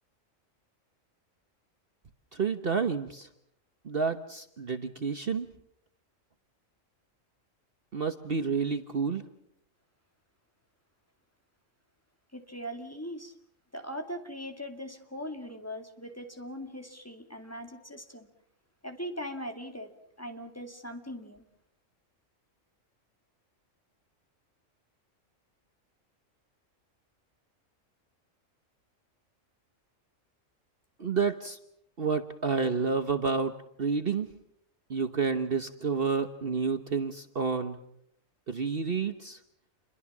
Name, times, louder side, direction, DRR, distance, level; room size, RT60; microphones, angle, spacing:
voice 1, 2.3-3.3 3.8-5.5 7.9-9.2 31.0-31.6 32.0-34.3 34.9-37.8 38.5-39.4, right 5 dB, 45° right, 8 dB, 1.3 m, -29 dB
voice 2, 12.3-13.3 13.7-18.3 18.8-21.4, equal, 10° left, 5 dB, 2.3 m, -40 dB
28.5 x 22.5 x 7.3 m, 0.74 s
omnidirectional pair, 1.4 m